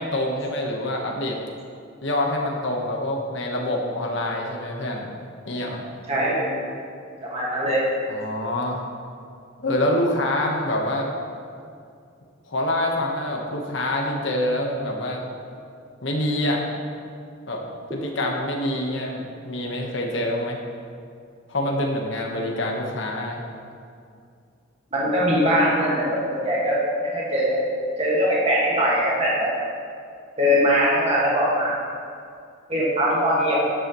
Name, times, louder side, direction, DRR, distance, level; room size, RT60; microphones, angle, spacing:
voice 1, 0.0-1.4 2.0-5.1 5.5-5.8 8.1-8.8 9.6-11.1 12.5-15.2 16.0-16.6 17.5-17.6 17.9-20.6 21.5-23.4, left 1 dB, 60° left, 0 dB, 1.2 m, -26 dB
voice 2, 6.1-6.5 7.2-7.8 24.9-27.6 28.0-29.5 30.4-31.8 32.7-33.6, equal, 30° right, -6 dB, 1.8 m, -21 dB
12.0 x 8.8 x 3.1 m, 2.4 s
head